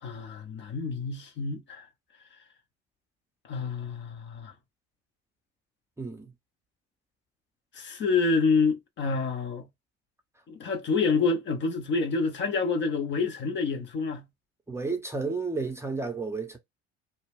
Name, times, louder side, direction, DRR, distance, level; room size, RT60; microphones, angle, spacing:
voice 1, 0.0-1.9 3.5-4.5 7.7-9.7 10.5-14.2, left 4 dB, 35° left, 0.5 m, -28 dB
voice 2, 6.0-6.3 14.7-16.6, right 4 dB, 10° right, 0.6 m, -32 dB
2.2 x 2.1 x 3.3 m
figure-of-eight pair, 60°, 33 cm